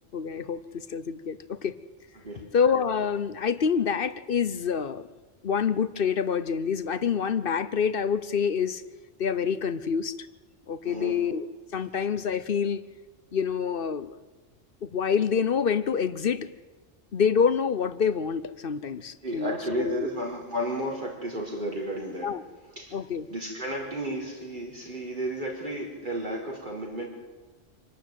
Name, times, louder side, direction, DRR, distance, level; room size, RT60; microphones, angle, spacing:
voice 1, 0.1-1.7 2.5-5.1 5.4-8.8 9.2-10.2 10.7-11.5 11.7-12.8 13.3-14.2 14.8-16.5 17.1-20.1 22.2-22.4 22.9-23.3, left 6 dB, 50° left, 15 dB, 1.0 m, -27 dB
voice 2, 2.2-2.5 10.8-11.2 19.2-22.3 22.8-23.0 23.3-27.1, right 1 dB, 40° right, 0 dB, 4.7 m, -33 dB
25.5 x 12.5 x 9.2 m, 1.2 s
omnidirectional pair, 1.3 m